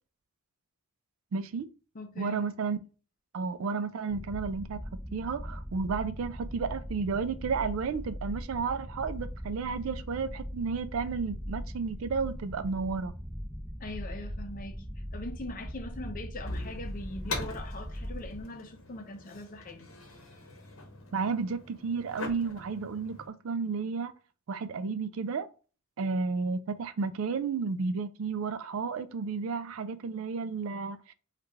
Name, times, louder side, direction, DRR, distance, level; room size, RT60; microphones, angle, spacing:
voice 1, 1.3-1.7 2.2-2.8 3.3-13.1 21.1-24.1 24.5-25.5 26.0-31.1, right 5 dB, 70° right, 0.4 m, -32 dB
voice 2, 1.9-2.5 13.8-19.9, left 2 dB, 40° left, 0.6 m, -42 dB
sound 1, 4.1-18.4, equal, ahead, 0.6 m, -40 dB
sound 2, 16.4-23.3, left 2 dB, 70° left, 0.9 m, -42 dB
3.1 x 2.4 x 3.3 m
head